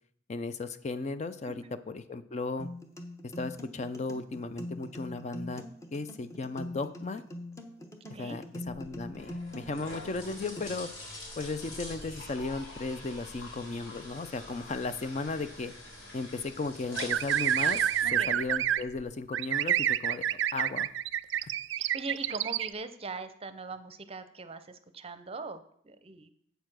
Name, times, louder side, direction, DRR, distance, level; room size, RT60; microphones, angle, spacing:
voice 1, 0.3-2.7 3.4-5.6 5.9-7.2 8.2-10.9 11.4-15.7 16.1-17.8 18.1-20.9 21.4-21.5, left 3 dB, 35° left, 11 dB, 0.4 m, -35 dB
voice 2, 1.4-1.7 8.0-8.4 18.0-18.4 21.8-26.3, right 3 dB, 30° right, 11 dB, 0.6 m, -41 dB
sound 1, 2.6-10.6, left 1 dB, 15° left, 0.9 m, -43 dB
sound 2, 8.7-19.0, left 1 dB, 75° left, 3.6 m, -45 dB
sound 3, 17.0-18.8 19.3-22.7, right 10 dB, 65° right, 0.3 m, -28 dB
8.1 x 6.8 x 6.1 m, 0.65 s
head